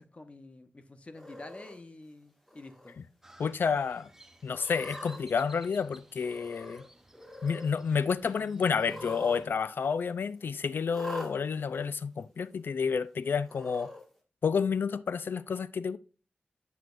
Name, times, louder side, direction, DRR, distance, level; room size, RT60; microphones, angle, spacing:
voice 1, 0.0-3.0, left 2 dB, 35° left, 0.9 m, -48 dB
Cat, 1.1-1.7 2.5-2.9 3.3-3.4 4.5-5.2 6.2-6.9 7.1-7.7 8.7-9.4 9.7-9.8 10.9-11.3 12.2-12.3 13.4-14.0, equal, 5° left, 1.7 m, -44 dB
Crow, 3.2-9.5, right 1 dB, 10° right, 0.8 m, -55 dB
voice 2, 3.4-4.1 4.4-6.8 7.4-13.9 14.4-16.0, left 6 dB, 80° left, 0.4 m, -30 dB
8.2 x 7.4 x 2.5 m
wide cardioid pair, 95°, 4 cm